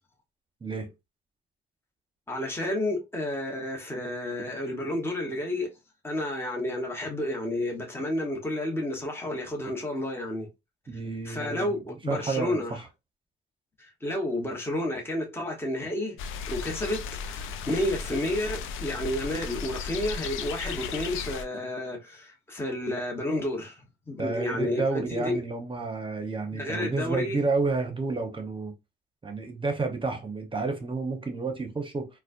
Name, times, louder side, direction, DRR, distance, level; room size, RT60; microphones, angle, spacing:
voice 1, 2.3-5.7 6.0-10.5 11.2-12.8 13.8-16.2 16.5-25.4 26.5-27.4, left 1 dB, 10° left, 1.1 m, -31 dB
voice 2, 10.9-11.8 12.1-12.8 24.2-28.7 29.2-32.1, right 3 dB, 25° right, 0.9 m, -30 dB
sound 1, 16.2-21.4, left 6 dB, 85° left, 0.5 m, -35 dB
4.1 x 2.2 x 2.6 m
cardioid pair, 90°, 20 cm